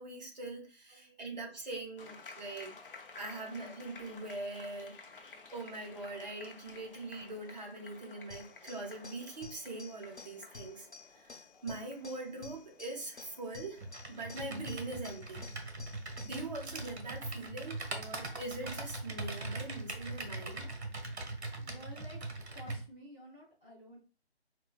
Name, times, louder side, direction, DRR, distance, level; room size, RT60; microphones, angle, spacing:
voice 1, 0.0-2.7 3.2-15.5 16.2-20.7, right 2 dB, 40° right, 0 dB, 0.9 m, -43 dB
voice 2, 0.9-1.3 3.3-3.4 21.6-22.2 22.5-24.0, equal, 10° right, -8 dB, 1.2 m, -52 dB
sound 1, 2.0-16.9, left 4 dB, 55° left, 0.6 m, -55 dB
sound 2, 8.3-16.5, left 3 dB, 90° left, 1.0 m, -52 dB
Computer keyboard, 13.8-22.8, right 2 dB, 80° right, 0.9 m, -41 dB
4.2 x 2.2 x 2.3 m, 0.36 s
figure-of-eight pair, 155°, 33 cm